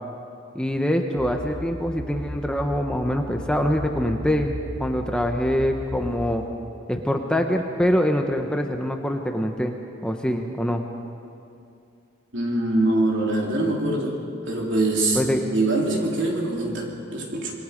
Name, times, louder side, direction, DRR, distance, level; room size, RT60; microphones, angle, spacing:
voice 1, 0.5-6.4 6.9-9.7 10.0-10.8 15.1-15.5, equal, 5° left, 3 dB, 1.0 m, -24 dB
sound 1, 1.1-6.3, left 1 dB, 85° right, 3.3 m, -36 dB
voice 2, 12.3-14.2 14.5-17.5, right 2 dB, 65° right, -1 dB, 3.7 m, -24 dB
27.0 x 22.0 x 5.2 m, 2.5 s
head